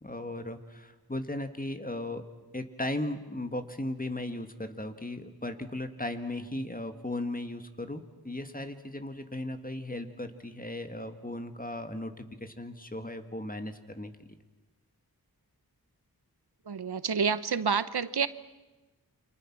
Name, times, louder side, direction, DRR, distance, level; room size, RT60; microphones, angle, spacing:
voice 1, 0.0-2.2 2.5-14.3, left 1 dB, 20° left, 8 dB, 1.9 m, -37 dB
voice 2, 16.7-18.3, right 6 dB, 80° right, 15 dB, 0.9 m, -28 dB
29.0 x 25.5 x 6.1 m, 1.1 s
wide cardioid pair, 65°, 39 cm